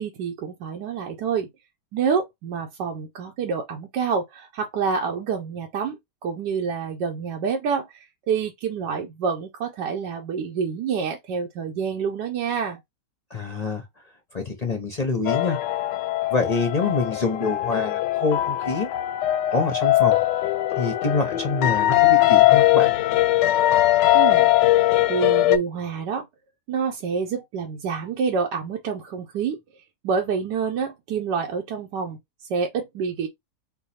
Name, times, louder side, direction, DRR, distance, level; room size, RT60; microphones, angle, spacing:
voice 1, 0.0-1.5 1.9-12.8 24.1-24.5 25.1-26.3 26.7-29.6 30.0-32.2 32.5-33.3, right 6 dB, 85° right, 1.4 m, -27 dB
voice 2, 13.3-13.8 14.3-15.6 16.3-18.9 19.5-20.2 20.8-22.9, left 3 dB, 45° left, 0.5 m, -26 dB
sound 1, 15.3-25.6, left 16 dB, 90° left, 1.2 m, -20 dB
4.7 x 2.3 x 4.1 m
omnidirectional pair, 1.8 m